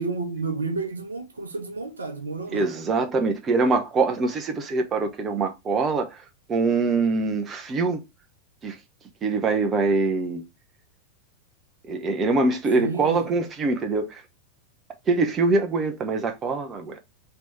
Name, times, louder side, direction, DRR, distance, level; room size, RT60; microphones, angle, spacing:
voice 1, 0.0-2.7 12.8-13.2, right 3 dB, 75° right, 0.9 m, -31 dB
voice 2, 2.5-6.2 6.5-8.0 8.6-8.8 9.2-10.4 11.9-14.2 15.1-17.0, right 3 dB, 25° right, 0.7 m, -24 dB
3.3 x 3.1 x 4.0 m
figure-of-eight pair, 90°, 0 cm